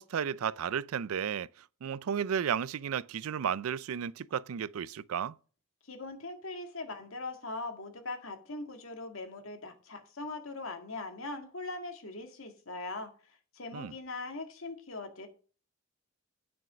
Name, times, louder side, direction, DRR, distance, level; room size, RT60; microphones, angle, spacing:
voice 1, 0.0-1.5 1.8-5.4 13.7-13.9, right 8 dB, 80° right, 0.4 m, -33 dB
voice 2, 5.9-13.1 13.5-15.3, left 3 dB, 70° left, 1.9 m, -41 dB
9.3 x 6.2 x 5.1 m
head